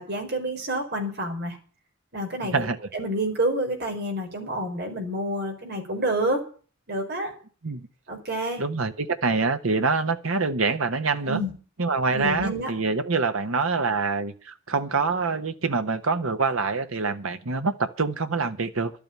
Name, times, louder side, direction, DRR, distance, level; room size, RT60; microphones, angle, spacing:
voice 1, 0.0-1.6 2.1-6.5 6.9-7.4 8.1-8.6 11.3-11.5 12.1-12.7, right 1 dB, 55° right, 3 dB, 4.6 m, -28 dB
voice 2, 2.5-2.9 7.6-7.8 8.6-11.4 11.8-18.9, right 4 dB, 90° right, 8 dB, 1.1 m, -25 dB
12.5 x 8.7 x 8.5 m, 0.39 s
head